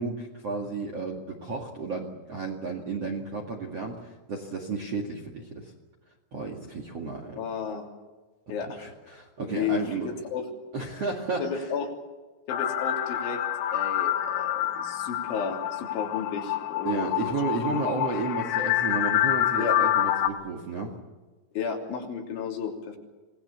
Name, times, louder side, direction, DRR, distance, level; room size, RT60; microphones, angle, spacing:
voice 1, 0.0-5.7 6.3-7.4 8.8-10.1 10.7-11.7 16.8-21.0, right 4 dB, 45° right, 3 dB, 2.0 m, -32 dB
voice 2, 7.3-7.9 8.5-9.2 9.5-10.5 11.4-11.9 12.5-13.4 13.7-17.3 17.7-17.8 18.2-18.3 19.6-19.8 21.6-23.0, left 6 dB, 70° left, 1 dB, 5.4 m, -33 dB
sound 1, 12.5-20.3, left 12 dB, 90° left, 4.0 m, -27 dB
26.5 x 19.5 x 7.0 m, 1.3 s
omnidirectional pair, 5.8 m